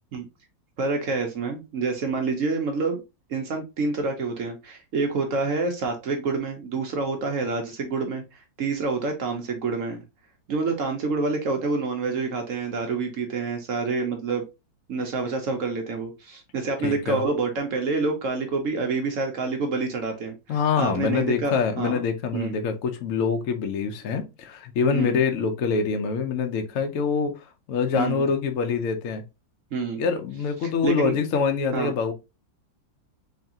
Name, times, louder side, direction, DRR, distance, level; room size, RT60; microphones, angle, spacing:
voice 1, 0.8-3.0 3.3-10.0 10.5-14.4 14.9-22.0 22.3-22.5 24.9-25.2 27.9-28.2 29.7-30.0 30.6-31.2 31.7-31.9, right 4 dB, 65° right, 0.8 m, -27 dB
voice 2, 16.8-17.2 20.5-29.2 30.0-32.1, left 5 dB, 65° left, 0.8 m, -25 dB
3.5 x 3.2 x 2.7 m
omnidirectional pair, 2.1 m